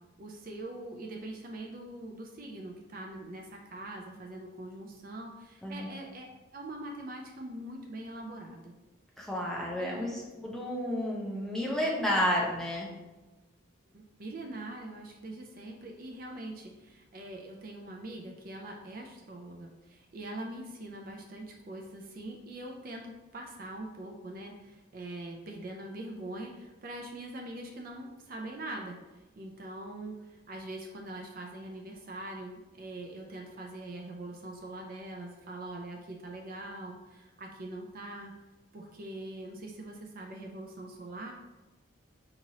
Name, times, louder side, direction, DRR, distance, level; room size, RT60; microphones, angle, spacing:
voice 1, 0.2-6.3 6.5-8.7 9.8-10.3 13.9-29.0 29.4-38.3 38.7-41.3, right 1 dB, 45° right, 1 dB, 0.4 m, -43 dB
voice 2, 9.2-12.9, equal, ahead, -4 dB, 0.6 m, -31 dB
5.0 x 3.0 x 2.8 m, 1.1 s
head